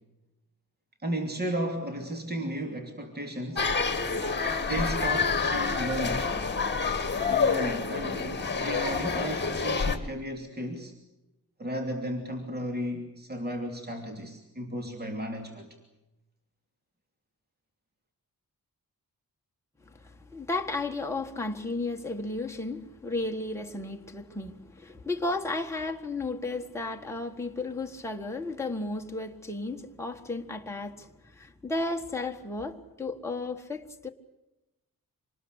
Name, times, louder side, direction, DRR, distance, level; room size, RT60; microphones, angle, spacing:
voice 1, 1.0-3.7 4.7-6.3 7.3-10.9 11.6-15.8, equal, 25° right, 2.9 m, -34 dB
sound 1, 3.6-10.0, left 5 dB, 30° left, 2.1 m, -28 dB
voice 2, 20.0-34.1, left 2 dB, 5° left, 1.6 m, -34 dB
26.5 x 20.0 x 8.1 m
wide cardioid pair, 140°, 36 cm